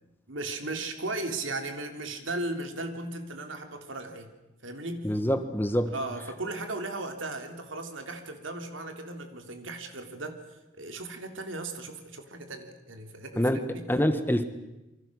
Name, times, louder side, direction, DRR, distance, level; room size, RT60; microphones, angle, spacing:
voice 1, 0.3-4.3 4.6-5.1 5.9-10.4 10.7-13.9, right 2 dB, 90° right, 5 dB, 3.4 m, -36 dB
voice 2, 5.0-5.9 13.4-14.4, equal, 10° left, 9 dB, 1.4 m, -26 dB
28.0 x 24.0 x 6.4 m, 1.0 s
head